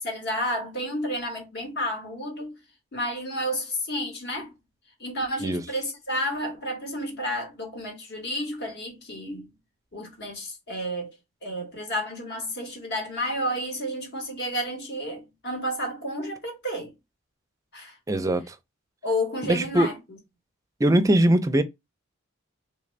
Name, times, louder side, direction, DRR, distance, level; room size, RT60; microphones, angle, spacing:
voice 1, 0.0-2.5 2.9-4.5 5.0-9.5 9.9-16.9 17.7-18.0 19.0-20.2, equal, 55° left, 1.3 m, -31 dB
voice 2, 18.1-18.6 19.5-19.9 20.8-21.6, right 1 dB, 15° right, 0.4 m, -21 dB
3.6 x 2.5 x 3.1 m
head